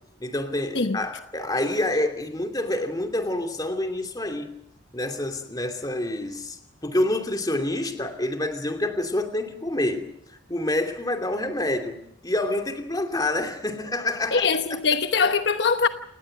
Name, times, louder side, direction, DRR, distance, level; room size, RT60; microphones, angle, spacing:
voice 1, 0.2-4.5 4.9-14.8, left 1 dB, 20° left, 2.7 m, -27 dB
voice 2, 14.3-15.9, left 5 dB, 65° left, 1.0 m, -22 dB
29.0 x 19.0 x 6.6 m
head